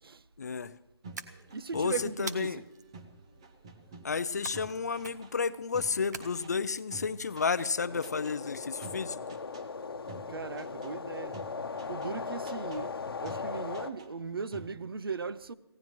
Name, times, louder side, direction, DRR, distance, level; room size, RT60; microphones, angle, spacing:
voice 1, 0.4-0.7 1.7-2.6 4.0-9.4, left 5 dB, 40° left, 0.5 m, -32 dB
sound 1, 1.0-6.6 6.9-7.7 8.0-8.4 8.8-9.7 10.1-10.9 11.3-12.1 12.4-12.8 13.2-14.3 14.5-14.9, right 3 dB, 10° right, 0.5 m, -50 dB
sound 2, 1.1-1.7 2.3-2.9 4.4-4.8 5.0-5.4 6.1-6.8, right 4 dB, 40° right, 1.1 m, -43 dB
voice 2, 1.5-2.5 10.3-11.4 11.9-15.5, right 5 dB, 60° right, 0.7 m, -38 dB
sound 3, 7.9-13.9, left 4 dB, 60° left, 1.0 m, -38 dB
25.5 x 17.0 x 3.1 m
hypercardioid pair, 170°, 14 cm